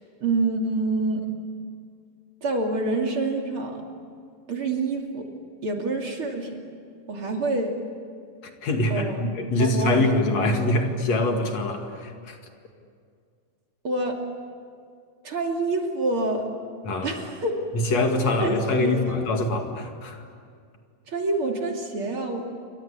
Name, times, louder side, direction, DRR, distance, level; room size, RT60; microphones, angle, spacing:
voice 1, 0.2-1.3 2.4-3.8 4.5-5.3 5.6-6.6 7.1-7.7 8.9-9.2 9.6-10.2 13.8-14.2 15.2-16.5 17.0-17.5 18.4-19.2 21.1-22.4, right 2 dB, 45° right, 2 dB, 3.4 m, -27 dB
voice 2, 8.6-12.4 16.9-17.2 17.7-20.2, left 2 dB, 60° left, 4 dB, 3.3 m, -24 dB
28.5 x 24.5 x 8.4 m, 2.2 s
omnidirectional pair, 3.4 m